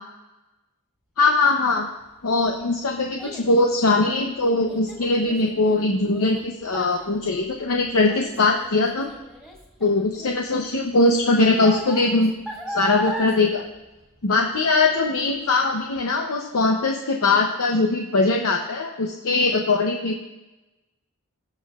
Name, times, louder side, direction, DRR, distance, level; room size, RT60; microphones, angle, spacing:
voice 1, 1.2-1.9 2.2-9.1 9.8-12.3 12.7-13.6 14.2-20.2, left 3 dB, 70° left, 2 dB, 0.7 m, -21 dB
Child speech kid speaking, 2.0-14.7 15.0-15.4 15.9-16.0, right 1 dB, 5° left, 2.0 m, -37 dB
19.0 x 6.5 x 2.4 m, 1.0 s
head